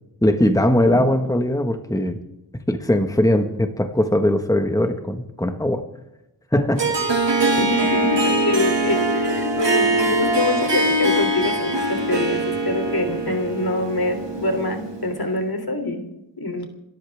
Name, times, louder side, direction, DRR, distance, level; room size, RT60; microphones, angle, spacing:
voice 1, 0.2-2.2 2.7-5.8 6.5-6.9, left 1 dB, 10° left, 6 dB, 1.5 m, -20 dB
Harp, 6.8-15.2, right 2 dB, 85° right, 2.3 m, -22 dB
voice 2, 7.5-16.0 16.4-16.7, left 2 dB, 60° left, 6 dB, 3.3 m, -25 dB
28.5 x 13.5 x 3.6 m, 0.90 s
wide cardioid pair, 45°, 42 cm